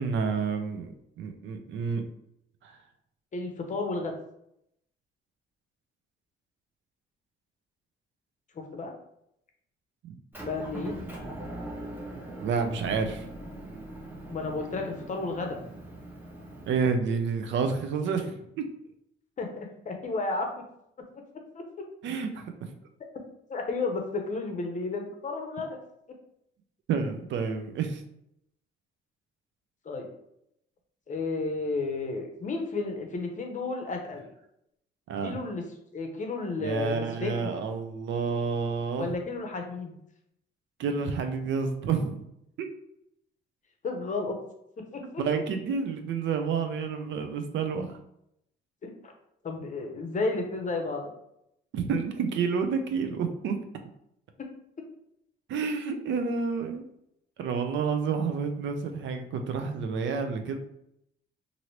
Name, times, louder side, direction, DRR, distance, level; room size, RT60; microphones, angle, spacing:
voice 1, 0.0-2.0 2.6-2.8 10.0-10.2 12.4-13.3 16.7-18.7 22.0-22.4 26.9-28.0 35.1-35.4 36.6-39.1 40.8-42.2 42.6-42.7 45.2-48.0 51.7-53.6 55.5-56.9 57.4-60.6, right 5 dB, 70° right, 6 dB, 0.5 m, -29 dB
voice 2, 3.3-4.1 8.5-8.9 10.4-10.9 14.3-15.6 19.4-20.5 21.5-21.6 23.5-25.8 29.8-30.1 31.1-34.3 35.2-35.6 35.9-37.5 39.0-39.9 43.8-44.4 44.9-45.2 48.8-49.1 49.4-51.1, left 3 dB, 40° left, 3 dB, 0.7 m, -32 dB
Motor vehicle (road) / Engine, 10.3-16.8, right 1 dB, 10° right, 0.8 m, -41 dB
2.9 x 2.6 x 3.0 m, 0.77 s
cardioid pair, 90°, 20 cm